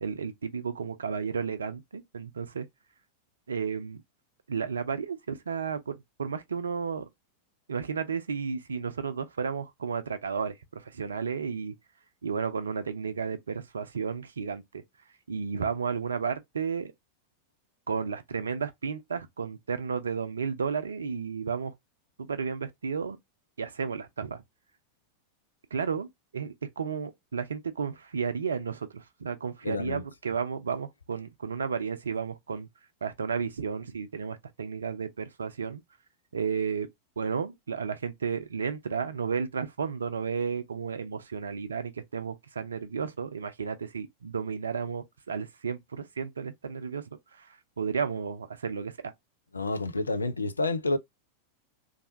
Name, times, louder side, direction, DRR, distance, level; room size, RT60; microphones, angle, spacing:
voice 1, 0.0-2.7 3.5-4.0 4.5-7.1 7.7-11.7 12.2-14.8 15.3-16.9 17.9-21.7 22.3-23.2 23.6-24.4 25.7-32.7 33.0-35.8 36.3-36.9 37.2-47.0 47.3-48.9, right 6 dB, 70° right, 0.5 m, -33 dB
voice 2, 29.6-30.0 49.5-51.0, left 2 dB, 80° left, 0.4 m, -29 dB
3.3 x 2.7 x 2.5 m
figure-of-eight pair, 90°, 0 cm